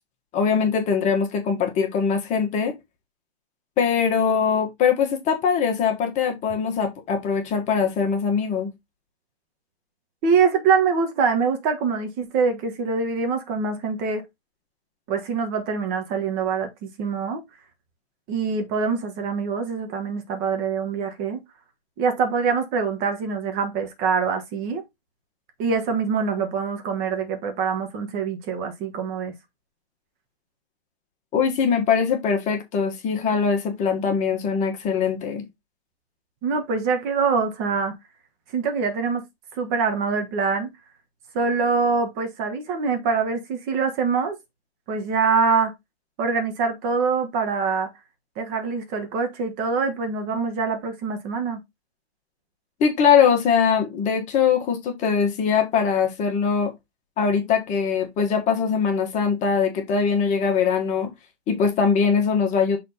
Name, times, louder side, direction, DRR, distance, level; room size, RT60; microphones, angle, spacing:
voice 1, 0.3-2.8 3.8-8.7 31.3-35.4 52.8-56.7 57.2-61.1 61.5-62.8, left 6 dB, 20° left, 1.7 m, -22 dB
voice 2, 10.2-14.2 15.1-17.4 18.3-21.4 22.0-24.8 25.6-29.3 36.4-37.9 38.5-39.2 39.5-40.7 41.3-44.4 44.9-45.7 46.2-47.9 48.4-51.6, right 5 dB, 30° right, 1.4 m, -24 dB
6.4 x 3.7 x 4.2 m
hypercardioid pair, 140°, 32 cm